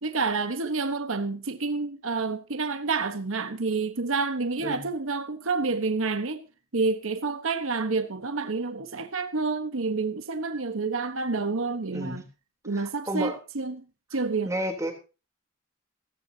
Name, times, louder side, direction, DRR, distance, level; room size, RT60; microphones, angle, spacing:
voice 1, 0.0-6.5 6.7-12.2 12.6-13.8 14.1-14.5, right 4 dB, 85° right, 1.2 m, -29 dB
voice 2, 11.9-12.2 12.7-13.4 14.4-14.9, right 1 dB, 15° right, 3.4 m, -31 dB
16.5 x 15.0 x 2.8 m
head